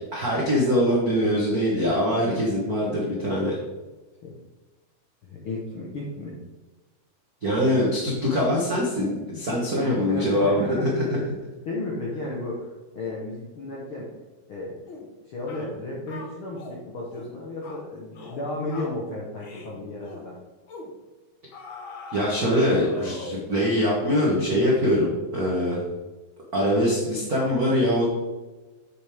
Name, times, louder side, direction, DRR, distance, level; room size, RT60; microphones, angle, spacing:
voice 1, 0.1-3.6 7.4-11.2 22.1-25.8 26.5-28.0, equal, 65° right, -4 dB, 0.8 m, -23 dB
voice 2, 5.2-6.4 9.8-10.9 11.6-14.1 14.5-14.8 15.2-20.4, left 2 dB, 65° left, -3 dB, 1.3 m, -34 dB
sound 1, 14.9-15.1 15.5-15.7 16.1-16.8 17.1-17.3 17.6-17.8 18.1-18.4 18.7-19.0 19.4-19.7 20.0-20.3 20.7-20.9 21.5-23.6, left 3 dB, 90° left, 1.1 m, -41 dB
8.0 x 6.8 x 3.5 m, 1.2 s
omnidirectional pair, 3.9 m